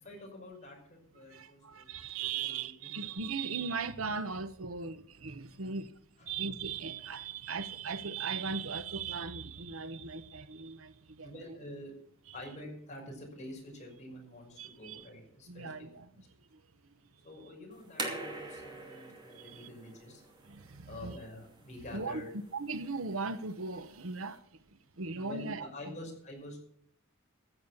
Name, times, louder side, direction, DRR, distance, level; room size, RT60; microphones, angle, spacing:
voice 1, 0.0-3.1 6.2-6.3 11.2-11.9 12.3-16.3 17.2-20.2 20.9-22.3 25.1-26.6, left 1 dB, 35° left, 5.8 m, -47 dB
voice 2, 1.3-5.9 6.3-11.3 14.6-15.1 15.5-16.1 19.3-19.7 20.4-21.2 21.9-22.2 22.5-24.4 25.0-25.7, right 5 dB, 80° right, 1.0 m, -38 dB
sound 1, 17.7-24.4, right 2 dB, 20° right, 2.8 m, -45 dB
15.0 x 8.1 x 7.1 m
head